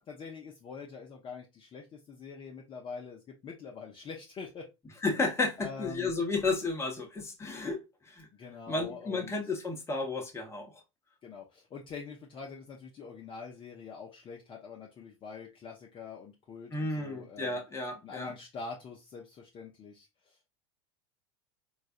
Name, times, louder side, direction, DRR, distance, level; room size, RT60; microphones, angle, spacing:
voice 1, 0.1-4.7 5.6-6.1 8.3-9.3 11.2-17.6 18.0-20.4, left 5 dB, 35° left, 0.8 m, -45 dB
voice 2, 5.0-8.3 8.7-10.7 16.7-18.3, left 3 dB, 15° left, 1.1 m, -32 dB
3.8 x 2.4 x 2.6 m
hypercardioid pair, 95°, 16 cm